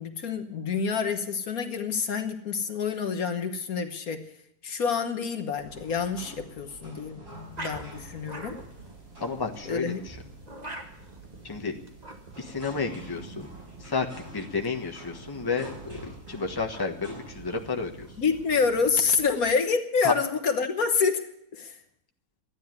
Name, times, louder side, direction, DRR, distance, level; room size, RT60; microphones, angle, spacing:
voice 1, 0.0-4.2 4.6-7.2 7.6-8.6 9.7-10.0 18.2-21.3 21.5-21.7, left 5 dB, 65° left, 7 dB, 1.6 m, -27 dB
sound 1, 5.6-19.5, right 2 dB, 80° right, 7.0 m, -48 dB
sound 2, 7.2-19.0, right 2 dB, 25° right, 1.8 m, -46 dB
voice 2, 9.2-10.2 11.4-11.7 12.4-13.5 13.8-14.1 14.3-18.1 20.0-20.1, left 4 dB, 15° left, 2 dB, 1.3 m, -31 dB
13.0 x 9.9 x 9.6 m, 0.74 s
omnidirectional pair, 1.7 m